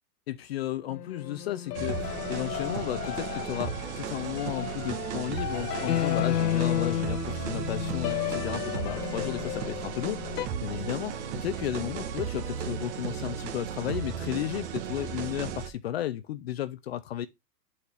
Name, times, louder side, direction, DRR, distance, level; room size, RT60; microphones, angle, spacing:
voice 1, 0.3-17.3, left 12 dB, 45° left, 0.5 m, -34 dB
sound 1, 0.9-10.5, left 12 dB, 80° left, 0.7 m, -32 dB
sound 2, 1.7-15.7, right 8 dB, 45° right, 1.1 m, -35 dB
8.1 x 4.3 x 3.3 m
hypercardioid pair, 135°, 47 cm